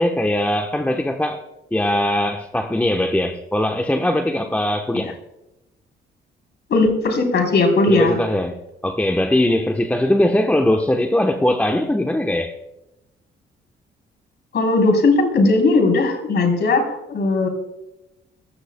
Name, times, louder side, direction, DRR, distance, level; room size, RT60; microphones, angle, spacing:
voice 1, 0.0-1.4 1.7-5.2 7.9-12.5, left 1 dB, 5° left, 1.0 m, -20 dB
voice 2, 6.7-8.2 14.5-17.5, left 3 dB, 60° left, 3.7 m, -17 dB
19.5 x 14.5 x 2.2 m
cardioid pair, 90°, 20 cm